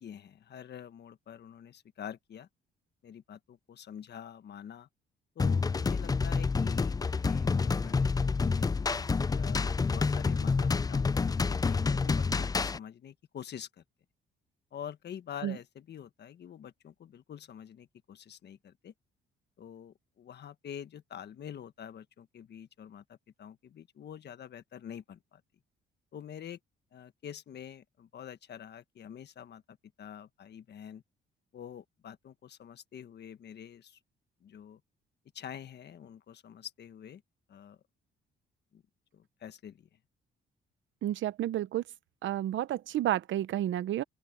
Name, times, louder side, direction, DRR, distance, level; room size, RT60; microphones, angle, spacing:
voice 1, 0.0-2.5 3.0-4.9 5.3-8.8 9.3-13.8 14.7-18.9 19.6-25.4 26.1-26.6 26.9-31.0 31.5-34.0 34.4-34.8 35.3-37.2 37.5-37.8 38.7-38.8 39.1-39.9, left 9 dB, 55° left, 1.4 m, -47 dB
sound 1, 5.4-12.8, left 4 dB, 20° left, 0.4 m, -28 dB
voice 2, 41.0-41.8 42.2-44.0, right 12 dB, 75° right, 0.9 m, -31 dB
open air
cardioid pair, 90°, 20 cm